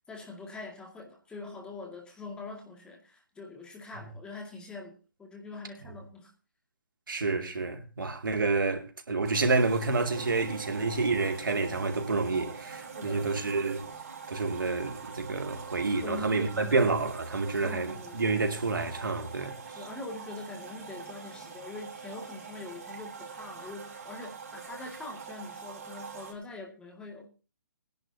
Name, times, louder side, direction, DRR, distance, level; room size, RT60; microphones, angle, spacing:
voice 1, 0.1-6.3 12.9-13.3 16.0-16.8 17.6-18.2 19.7-27.3, left 3 dB, 10° left, 2.2 m, -43 dB
voice 2, 7.1-13.8 14.3-19.6, right 3 dB, 80° right, 2.5 m, -29 dB
sound 1, 9.2-26.3, right 5 dB, 50° right, 5.1 m, -44 dB
20.0 x 10.5 x 2.8 m
hypercardioid pair, 145°, 11 cm